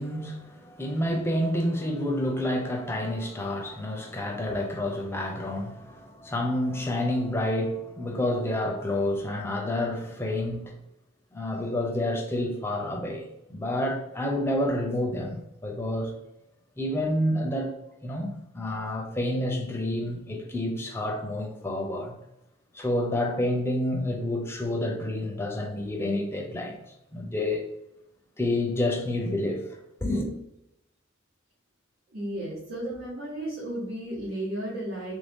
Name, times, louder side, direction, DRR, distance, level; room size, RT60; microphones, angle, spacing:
voice 1, 0.0-10.8 11.3-16.1 16.8-17.7 18.0-22.2 22.7-26.8 27.1-27.7 28.4-29.7 30.0-30.3, left 1 dB, 10° left, 0.5 m, -29 dB
voice 2, 32.1-35.2, right 1 dB, 90° right, 1.3 m, -34 dB
3.2 x 2.6 x 3.5 m
head